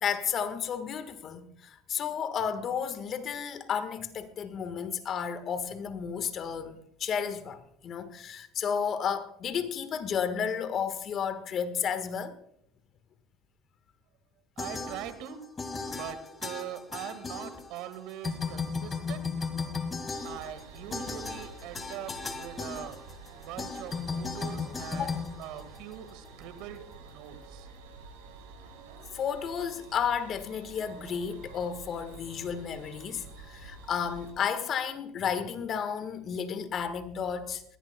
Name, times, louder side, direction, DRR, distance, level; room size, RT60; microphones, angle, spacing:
voice 1, 0.0-12.4 24.9-25.1 29.1-37.6, left 7 dB, 45° left, 1.4 m, -32 dB
sound 1, 14.6-15.3 15.6-17.9 18.2-26.1, left 4 dB, 25° left, 1.8 m, -36 dB
voice 2, 14.6-15.4 15.9-19.3 20.2-23.0 23.4-25.1 25.4-27.7, right 11 dB, 70° right, 1.7 m, -42 dB
sound 2, 20.1-34.3, right 4 dB, 85° right, 5.3 m, -49 dB
20.5 x 15.0 x 2.2 m
supercardioid pair, 100°, 0 cm